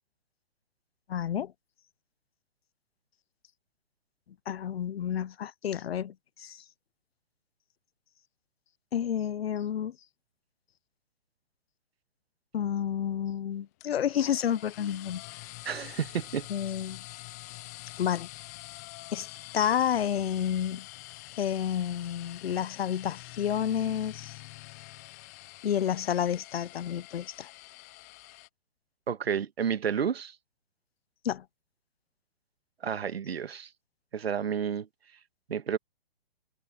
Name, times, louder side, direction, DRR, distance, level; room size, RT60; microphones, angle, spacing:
voice 1, 1.1-1.5 4.5-6.6 8.9-9.9 12.5-15.5 16.5-17.0 18.0-18.3 19.1-19.3 19.5-20.9 21.4-24.3 25.6-27.5 31.2-31.4, left 9 dB, 80° left, 0.8 m, -30 dB
sound 1, 13.8-28.5, left 20 dB, 15° left, 0.5 m, -46 dB
voice 2, 15.6-16.5 29.1-30.3 32.8-33.7 34.1-34.9 35.5-35.8, right 7 dB, 90° right, 1.5 m, -30 dB
hypercardioid pair, 155°, 30 cm